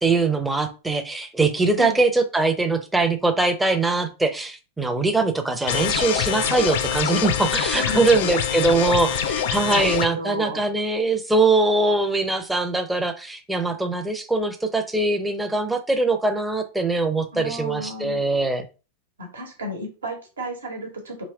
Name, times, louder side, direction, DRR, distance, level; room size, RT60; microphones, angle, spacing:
voice 1, 0.0-18.6, right 3 dB, 5° right, 0.6 m, -22 dB
sound 1, 5.7-10.1, left 9 dB, 55° left, 0.4 m, -24 dB
voice 2, 7.7-8.1 9.6-10.6 17.3-18.2 19.2-21.2, equal, 70° right, 1.1 m, -33 dB
3.2 x 2.8 x 3.6 m
figure-of-eight pair, 90°, 0 cm